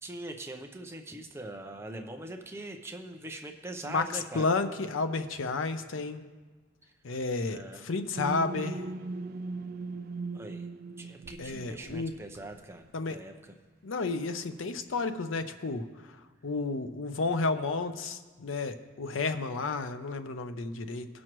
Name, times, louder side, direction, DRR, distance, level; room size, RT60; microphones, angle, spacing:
voice 1, 0.0-4.6 7.5-7.8 10.3-10.7 11.0-13.5, right 1 dB, 15° right, 3 dB, 0.6 m, -42 dB
voice 2, 3.8-6.2 7.0-8.8 11.4-12.1 12.9-13.2 13.8-15.8 16.4-21.1, left 3 dB, 80° left, 9 dB, 0.6 m, -31 dB
sound 1, 8.2-12.9, right 3 dB, 50° right, 0.3 m, -39 dB
18.5 x 6.3 x 3.0 m, 1.3 s
head